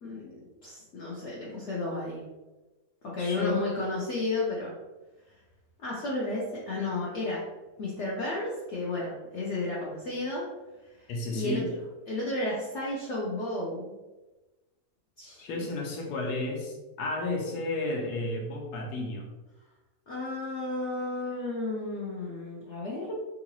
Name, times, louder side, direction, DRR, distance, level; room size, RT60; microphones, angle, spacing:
voice 1, 0.0-2.2 3.0-4.7 5.8-7.4 7.8-10.5 11.0-11.1 11.3-11.6 12.1-13.9 15.2-15.6 20.1-23.1, left 2 dB, 60° left, -5 dB, 0.8 m, -33 dB
voice 2, 3.2-3.6 11.1-11.7 15.4-19.3, left 2 dB, 90° left, 1 dB, 1.3 m, -32 dB
3.8 x 2.5 x 2.9 m, 1.1 s
omnidirectional pair, 1.6 m